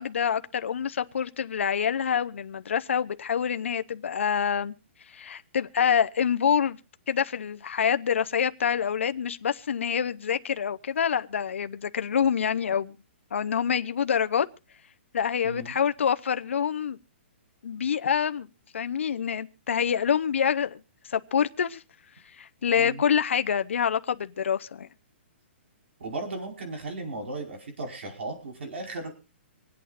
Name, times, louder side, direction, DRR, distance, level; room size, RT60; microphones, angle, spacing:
voice 1, 0.0-4.7 5.1-6.8 7.1-13.0 13.3-14.5 15.1-17.0 17.6-18.5 18.7-20.8 21.1-21.8 22.4-24.9, left 8 dB, 75° left, 0.8 m, -26 dB
voice 2, 26.0-29.1, right 2 dB, 65° right, 5.1 m, -36 dB
26.0 x 8.7 x 2.5 m
hypercardioid pair, 175°, 7 cm